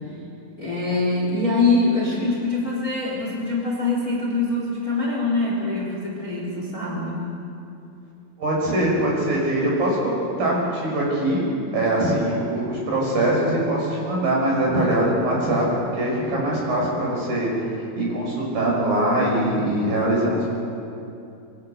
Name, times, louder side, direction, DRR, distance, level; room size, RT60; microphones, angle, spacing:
voice 1, 0.6-7.3, left 3 dB, 20° left, -3 dB, 4.2 m, -24 dB
voice 2, 8.4-11.4 11.7-15.7 15.9-17.7 18.0-20.5, right 1 dB, 50° right, -3 dB, 7.7 m, -22 dB
25.5 x 25.0 x 6.8 m, 2.6 s
omnidirectional pair, 5.5 m